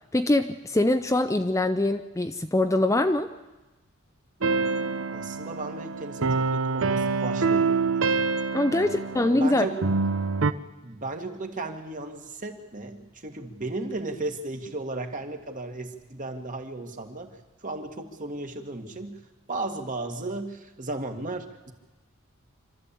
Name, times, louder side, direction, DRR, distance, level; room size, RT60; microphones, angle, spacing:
voice 1, 0.1-3.3 8.5-9.7, left 1 dB, 15° left, 8 dB, 0.6 m, -23 dB
sound 1, 4.4-10.5, right 4 dB, 65° right, 0.8 m, -26 dB
voice 2, 5.1-8.2 8.7-9.8 10.8-21.7, right 2 dB, 40° right, 4 dB, 1.9 m, -35 dB
26.5 x 13.0 x 8.5 m, 1.1 s
head